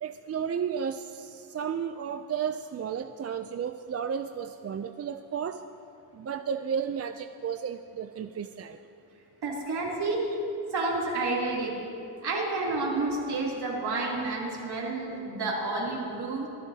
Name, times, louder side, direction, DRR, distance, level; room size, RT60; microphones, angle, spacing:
voice 1, 0.0-5.6 6.1-8.8, right 7 dB, 40° right, 8 dB, 0.4 m, -33 dB
voice 2, 9.4-10.3 10.7-11.8 12.2-16.5, right 3 dB, 70° right, -4 dB, 3.0 m, -30 dB
24.5 x 11.0 x 2.8 m, 2.7 s
wide cardioid pair, 115°, 41 cm